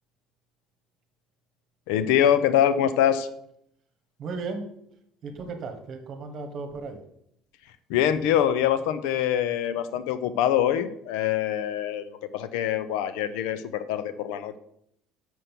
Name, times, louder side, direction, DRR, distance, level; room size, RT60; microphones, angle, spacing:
voice 1, 1.9-3.3 7.9-14.6, left 10 dB, 85° left, 13 dB, 0.6 m, -24 dB
voice 2, 4.2-4.7 5.2-7.0, right 4 dB, 40° right, 7 dB, 1.4 m, -35 dB
6.8 x 6.3 x 5.9 m, 0.73 s
cardioid pair, 160°, 0 cm